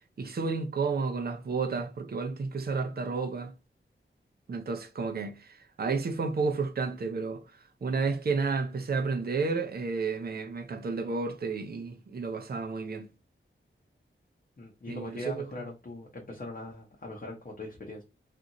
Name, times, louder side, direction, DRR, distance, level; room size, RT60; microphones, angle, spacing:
voice 1, 0.2-3.5 4.5-13.1 14.9-15.5, right 4 dB, 50° right, 0.5 m, -31 dB
voice 2, 14.6-18.0, left 2 dB, 45° left, 0.8 m, -41 dB
2.6 x 2.5 x 2.7 m
wide cardioid pair, 90°, 21 cm